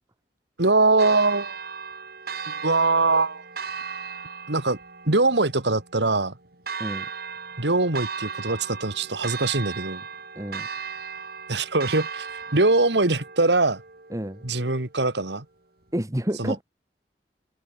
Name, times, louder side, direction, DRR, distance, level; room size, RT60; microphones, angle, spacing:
voice 1, 0.6-1.6 2.5-3.4 4.5-4.8 5.1-6.4 7.6-10.0 11.5-12.3 12.5-13.8 14.4-15.4 16.4-16.6, right 3 dB, 75° right, 2.3 m, -22 dB
Church bell, 1.0-15.0, right 5 dB, 60° right, 3.8 m, -37 dB
voice 2, 10.4-10.7 14.1-14.4 15.9-16.6, equal, 20° right, 1.8 m, -29 dB
head